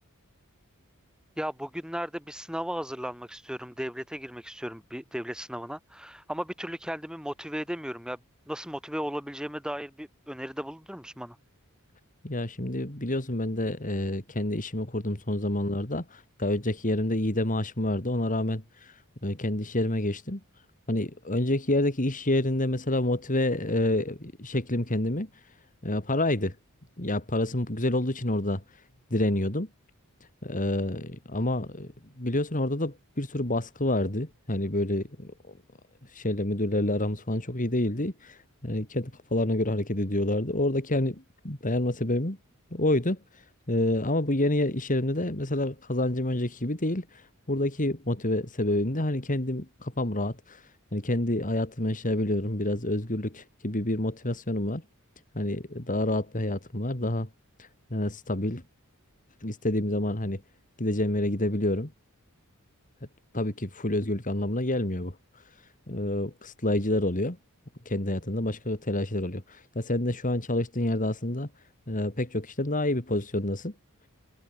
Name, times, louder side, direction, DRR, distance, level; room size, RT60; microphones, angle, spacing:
voice 1, 1.4-8.2 8.5-11.4, equal, 5° right, 8.0 m, -35 dB
voice 2, 12.2-20.4 20.9-25.3 25.8-26.5 27.0-28.6 29.1-29.7 30.4-31.9 32.2-35.5 36.1-42.4 42.7-43.2 43.7-50.6 50.9-54.8 55.3-57.3 57.6-58.6 59.4-60.4 60.8-61.9 63.3-65.2 65.9-67.4 67.8-71.5 71.9-73.7, left 1 dB, 35° left, 3.2 m, -28 dB
head